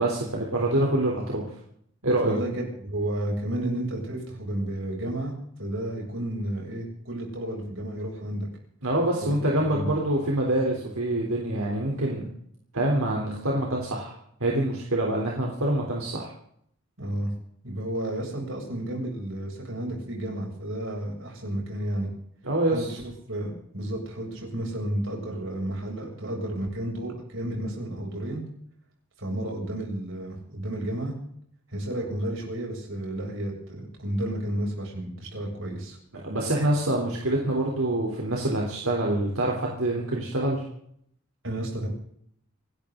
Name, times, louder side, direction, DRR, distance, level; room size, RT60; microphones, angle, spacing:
voice 1, 0.0-1.4 2.0-2.4 8.8-12.3 12.7-14.1 14.4-16.3 22.4-22.9 36.2-40.6, right 1 dB, 85° right, -2 dB, 3.6 m, -25 dB
voice 2, 2.2-5.3 5.6-8.5 9.2-9.9 17.0-17.3 17.6-22.1 22.7-23.0 23.3-28.4 29.2-31.1 31.7-36.0 41.4-41.9, right 1 dB, 65° right, 0 dB, 7.3 m, -32 dB
27.0 x 12.5 x 3.9 m, 0.68 s
head